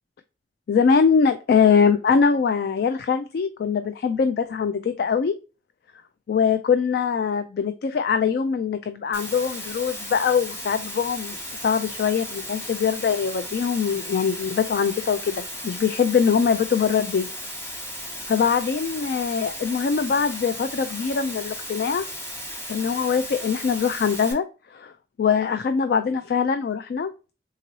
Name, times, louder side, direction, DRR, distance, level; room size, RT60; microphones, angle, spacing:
voice 1, 0.7-5.3 6.3-11.4 11.6-17.3 18.3-22.0 22.7-24.4 24.7-24.9 25.2-27.1, left 6 dB, 55° left, 9 dB, 0.3 m, -22 dB
Water, 9.1-24.3, equal, 15° left, 0.9 m, -35 dB
3.7 x 3.0 x 2.7 m, 0.32 s
head